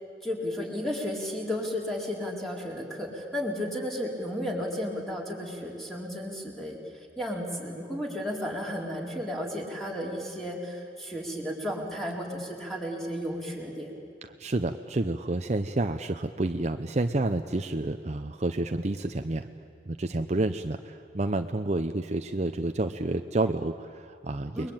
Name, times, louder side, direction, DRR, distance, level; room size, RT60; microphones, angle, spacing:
voice 1, 0.2-6.8 7.2-14.0 24.6-24.7, equal, ahead, -1 dB, 4.1 m, -33 dB
voice 2, 14.2-19.5 19.9-24.7, right 2 dB, 40° right, 8 dB, 0.7 m, -29 dB
29.5 x 22.0 x 8.9 m, 2.6 s
head